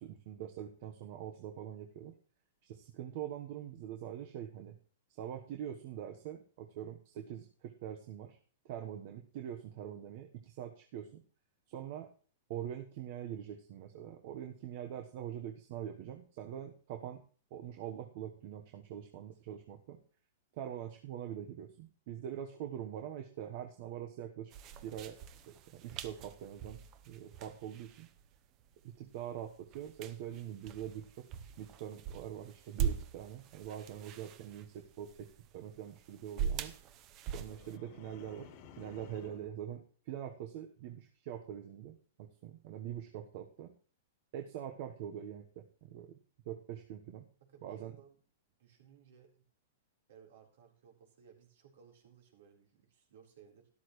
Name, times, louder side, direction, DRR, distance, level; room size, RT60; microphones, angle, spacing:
voice 1, 0.0-2.1 2.6-4.8 5.2-8.4 8.6-11.2 11.7-12.1 12.5-17.2 17.5-20.0 20.5-24.5 24.8-25.2 25.5-28.1 29.0-31.3 31.6-35.3 35.5-36.7 37.3-43.7 44.3-46.2 46.4-47.2 47.6-47.9, right 10 dB, 50° right, 4 dB, 1.2 m, -44 dB
sound 1, 24.5-37.8, right 8 dB, 30° right, 0.8 m, -42 dB
sound 2, 37.5-39.6, left 7 dB, 45° left, 1.6 m, -55 dB
voice 2, 47.4-48.2 48.6-49.4 50.1-53.7, right 8 dB, 70° right, 2 dB, 4.1 m, -60 dB
12.5 x 12.5 x 3.2 m, 0.41 s
hypercardioid pair, 150°, 0 cm